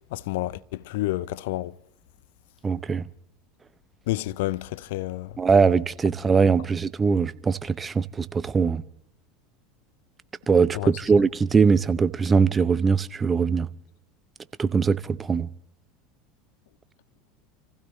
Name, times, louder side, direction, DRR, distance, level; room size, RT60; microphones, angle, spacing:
voice 1, 0.1-1.7 4.1-5.3 10.7-10.9, left 17 dB, 70° left, 0.6 m, -29 dB
voice 2, 2.6-3.1 5.4-8.8 10.5-13.7 14.6-15.5, right 5 dB, 25° right, 0.8 m, -21 dB
29.0 x 16.0 x 3.1 m
hypercardioid pair, 80°, 0 cm